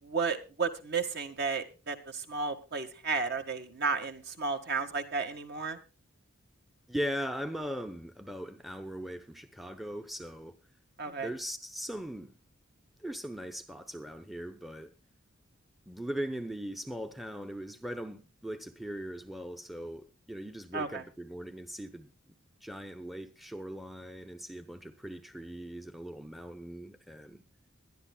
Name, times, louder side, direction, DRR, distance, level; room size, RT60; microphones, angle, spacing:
voice 1, 0.0-5.8 11.0-11.3 20.7-21.0, right 4 dB, 55° right, 1.7 m, -33 dB
voice 2, 6.9-10.6 11.1-12.4 13.0-14.9 15.9-27.4, equal, ahead, 0.7 m, -40 dB
22.0 x 11.0 x 2.3 m
head